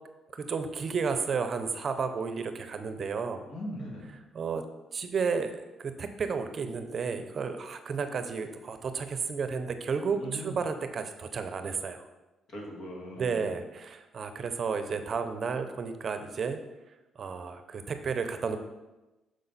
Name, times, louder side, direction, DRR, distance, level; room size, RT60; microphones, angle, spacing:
voice 1, 0.3-3.5 4.3-4.6 4.9-12.1 13.1-16.6 17.2-18.6, right 5 dB, 50° right, 8 dB, 0.6 m, -32 dB
voice 2, 3.5-4.2 10.1-10.6 12.5-13.5, equal, 60° left, -2 dB, 2.2 m, -40 dB
6.4 x 5.4 x 4.0 m, 1.0 s
cardioid pair, 90°, 0 cm